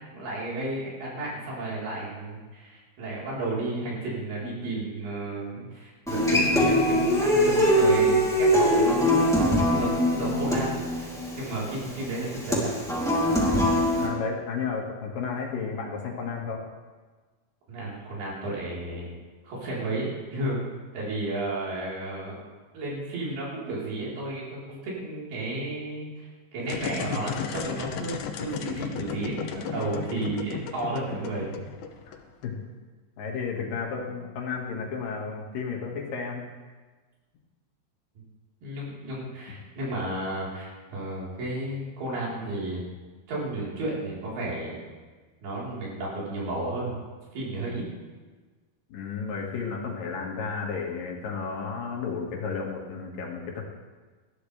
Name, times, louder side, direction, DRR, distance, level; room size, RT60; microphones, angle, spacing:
voice 1, 0.1-11.1 11.4-12.7 17.7-19.1 19.4-20.6 20.9-22.4 22.7-31.6 38.6-42.8 43.3-44.8 45.4-47.0 47.3-47.8, right 2 dB, 85° right, -6 dB, 5.9 m, -32 dB
Human voice / Acoustic guitar, 6.1-14.1, equal, ahead, 2.2 m, -22 dB
voice 2, 13.2-13.6 13.9-16.7 32.1-32.2 32.4-32.6 33.2-36.4 48.9-53.6, left 5 dB, 65° left, -1 dB, 3.4 m, -33 dB
sound 1, 26.6-32.5, left 7 dB, 85° left, 2.7 m, -35 dB
19.5 x 13.5 x 3.3 m, 1.4 s
omnidirectional pair, 4.3 m